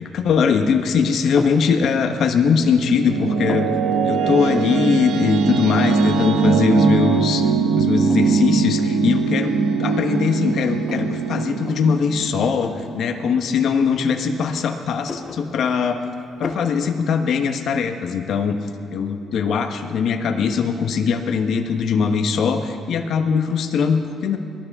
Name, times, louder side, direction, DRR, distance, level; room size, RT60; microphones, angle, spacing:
voice 1, 0.0-3.7 4.0-16.0 16.4-18.6 18.9-24.4, left 6 dB, 70° left, 5 dB, 1.1 m, -21 dB
sound 1, 1.4-1.7 2.2-2.9 3.1-3.7 4.5-4.9 5.2-5.3 5.5-6.1 6.5-6.6 7.1-7.6 8.1-8.4 9.2-9.3 9.8-11.2 11.6-11.8 12.6-12.9 13.9-14.6 14.9-15.9 16.4-16.7, left 4 dB, 35° left, 1.6 m, -34 dB
sound 2, 2.7-13.5, right 5 dB, 90° right, 1.1 m, -21 dB
22.0 x 12.5 x 3.6 m, 2.4 s
cardioid pair, 90°, 0 cm